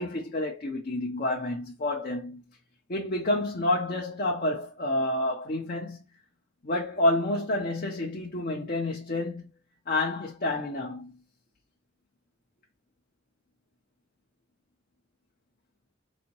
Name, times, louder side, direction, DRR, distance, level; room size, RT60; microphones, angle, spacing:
voice 1, 0.0-2.4 2.9-6.0 6.6-9.5 9.9-11.2, left 1 dB, 50° left, 0.7 m, -29 dB
4.1 x 2.6 x 3.0 m
head